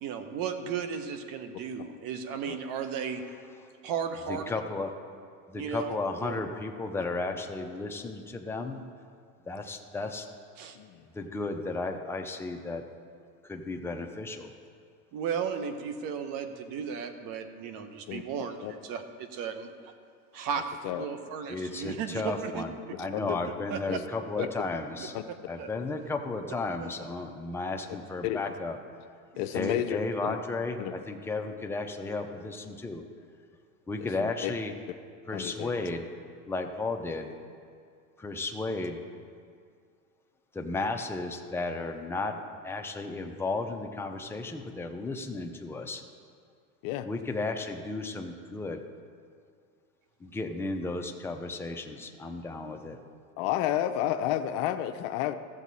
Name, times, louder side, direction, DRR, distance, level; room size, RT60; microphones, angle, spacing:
voice 1, 0.0-3.3 3.8-4.7 5.5-6.4 10.6-10.8 15.1-19.9 20.3-22.6 23.0-23.2 23.4-23.8 24.4-24.5 25.6-25.7 26.8-26.9, right 7 dB, 50° right, 8 dB, 1.1 m, -35 dB
voice 2, 4.3-4.9 5.5-8.8 9.5-10.3 11.1-12.8 13.4-14.5 21.5-25.1 25.5-28.8 29.5-33.0 33.9-34.7 35.3-36.0 36.5-37.3 38.2-39.0 40.5-42.4 42.6-46.0 47.0-48.9 50.2-53.0, left 3 dB, 5° left, 3 dB, 0.6 m, -34 dB
voice 3, 29.4-30.4 30.8-30.9 34.0-34.5 35.3-35.7 46.8-47.1 53.4-55.4, left 12 dB, 55° left, 8 dB, 0.7 m, -31 dB
14.5 x 7.2 x 4.1 m, 2.2 s
supercardioid pair, 115°, 44 cm